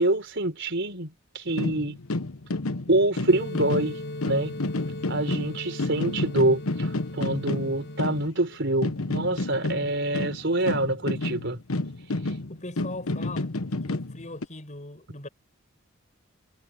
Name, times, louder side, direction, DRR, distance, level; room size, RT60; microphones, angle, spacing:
voice 1, 0.0-2.0 2.9-4.5 5.1-11.6, right 2 dB, 55° right, 4.9 m, -26 dB
sound 1, 1.5-8.5 8.8-14.4, left 2 dB, 85° left, 1.2 m, -30 dB
sound 2, 3.3-8.3, left 1 dB, 55° left, 5.4 m, -38 dB
voice 2, 12.5-13.5 13.9-15.3, left 2 dB, 35° left, 7.2 m, -39 dB
head